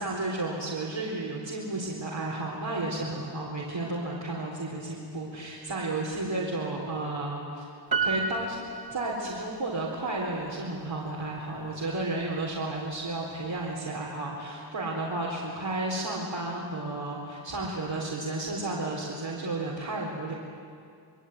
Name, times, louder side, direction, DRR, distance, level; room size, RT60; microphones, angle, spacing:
voice 1, 0.0-7.6 8.0-8.6 8.9-20.3, right 2 dB, 85° right, -5 dB, 4.2 m, -32 dB
Piano, 7.9-9.7 10.0-10.1, right 4 dB, 55° right, 2.5 m, -31 dB
26.5 x 22.5 x 9.5 m, 2.4 s
wide cardioid pair, 85°, 44 cm